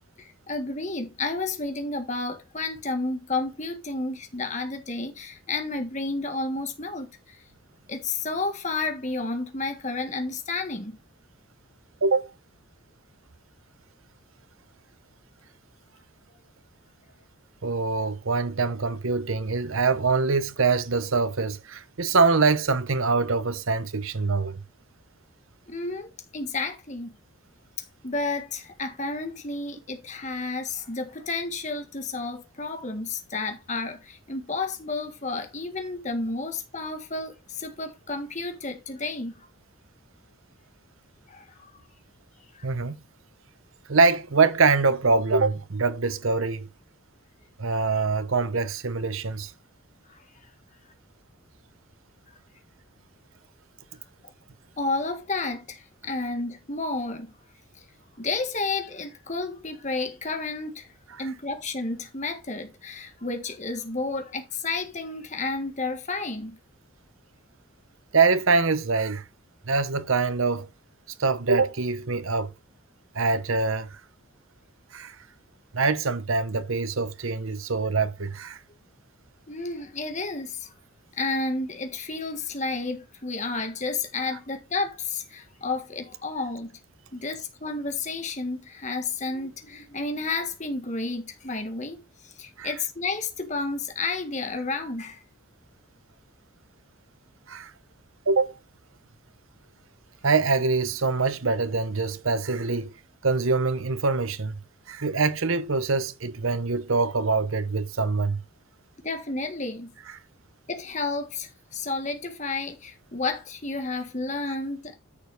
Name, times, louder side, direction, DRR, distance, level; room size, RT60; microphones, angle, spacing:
voice 1, 0.2-7.4 7.9-11.0 25.7-27.1 28.0-39.5 41.3-41.7 42.5-42.7 50.1-50.2 54.8-57.3 58.2-60.9 61.2-66.6 79.5-80.7 81.1-86.7 87.1-95.2 109.0-109.9 110.7-114.9, left 3 dB, 35° left, 1.6 m, -31 dB
voice 2, 12.0-12.3 17.6-24.6 42.6-43.0 43.9-46.7 47.6-49.5 68.1-69.2 69.7-70.7 71.2-72.5 73.1-74.0 74.9-75.2 75.7-78.6 92.6-92.7 97.5-97.7 98.3-98.6 100.2-102.9 103.2-104.6 104.9-108.4, right 4 dB, 75° right, 0.9 m, -24 dB
9.9 x 6.9 x 3.4 m
head